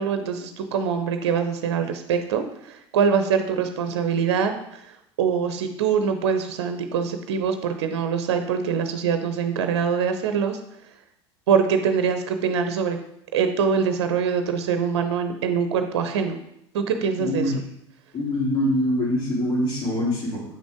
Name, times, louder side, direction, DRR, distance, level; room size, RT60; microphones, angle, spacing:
voice 1, 0.0-4.5 5.2-10.6 11.5-13.0 13.3-16.4 16.7-17.5, right 6 dB, 70° right, 7 dB, 0.7 m, -24 dB
voice 2, 17.2-17.6 18.1-20.4, left 1 dB, 40° left, -9 dB, 3.1 m, -24 dB
8.3 x 6.1 x 3.6 m, 0.80 s
figure-of-eight pair, 70°, 15 cm